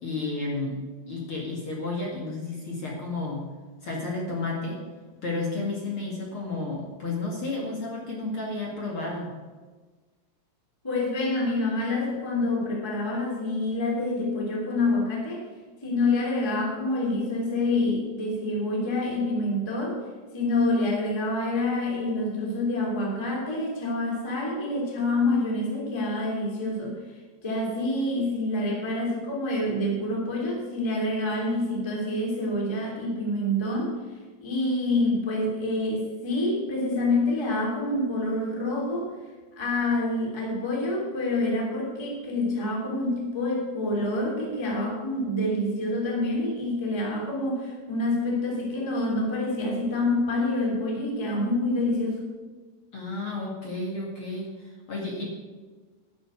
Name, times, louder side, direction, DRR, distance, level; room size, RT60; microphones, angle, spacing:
voice 1, 0.0-0.8 1.1-3.5 3.8-4.8 5.2-9.3 52.9-55.3, left 3 dB, 50° left, -2 dB, 1.5 m, -32 dB
voice 2, 10.8-15.4 15.8-20.0 20.3-26.9 27.4-33.9 34.4-39.1 39.5-52.2, left 2 dB, 10° left, -3 dB, 1.7 m, -27 dB
12.0 x 6.6 x 9.1 m, 1.3 s
omnidirectional pair, 5.9 m